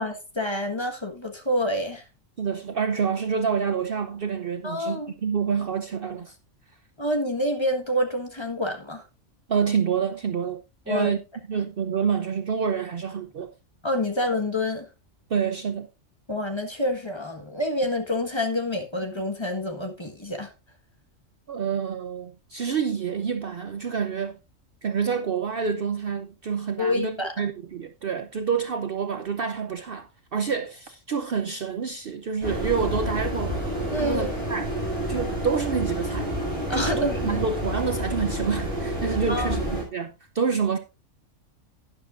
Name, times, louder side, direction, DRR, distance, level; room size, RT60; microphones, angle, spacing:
voice 1, 0.0-2.0 4.6-5.1 7.0-9.0 10.9-11.1 13.8-14.9 16.3-20.5 26.8-27.3 33.9-34.3 36.7-37.4 39.3-39.6, left 1 dB, 20° left, 1.4 m, -27 dB
voice 2, 2.4-6.4 9.5-10.6 10.9-11.2 11.5-13.5 15.3-15.9 21.5-24.4 24.8-33.6 34.0-34.7 35.1-36.3 36.7-40.8, right 6 dB, 55° right, 0.8 m, -27 dB
sound 1, 32.4-39.8, equal, 20° right, 5.8 m, -29 dB
12.0 x 10.5 x 2.5 m
omnidirectional pair, 1.4 m